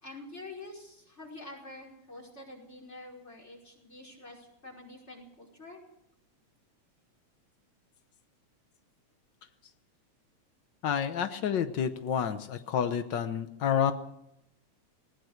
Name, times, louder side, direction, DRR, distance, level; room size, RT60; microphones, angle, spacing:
voice 1, 0.0-5.8, left 2 dB, 20° left, 1 dB, 5.4 m, -47 dB
voice 2, 10.8-13.9, left 8 dB, 70° left, 9 dB, 1.0 m, -29 dB
20.0 x 19.5 x 6.6 m, 0.80 s
omnidirectional pair, 3.4 m